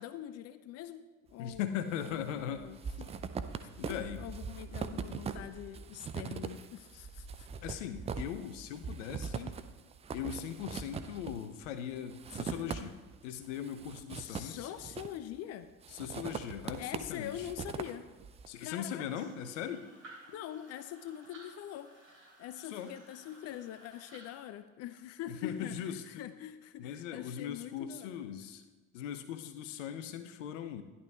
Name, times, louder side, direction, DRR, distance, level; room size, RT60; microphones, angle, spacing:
voice 1, 0.0-1.7 2.0-3.1 3.6-7.5 7.7-7.8 14.1-15.7 16.8-18.1 18.5-19.3 20.3-22.0 22.4-28.2, left 11 dB, 40° left, 12 dB, 0.5 m, -44 dB
voice 2, 1.4-2.7 3.8-4.2 7.6-9.6 10.1-14.7 15.9-17.5 18.5-19.9 22.6-22.9 25.3-26.0 26.8-28.6 28.9-30.8, left 9 dB, 60° left, 10 dB, 0.9 m, -39 dB
sound 1, 1.5-2.1 2.4-13.2 13.5-15.4 15.8-18.5, right 6 dB, 15° right, 0.4 m, -41 dB
sound 2, 19.0-24.4, right 2 dB, 80° right, 3.4 m, -56 dB
14.0 x 11.0 x 2.4 m, 1.2 s
figure-of-eight pair, 65°, 41 cm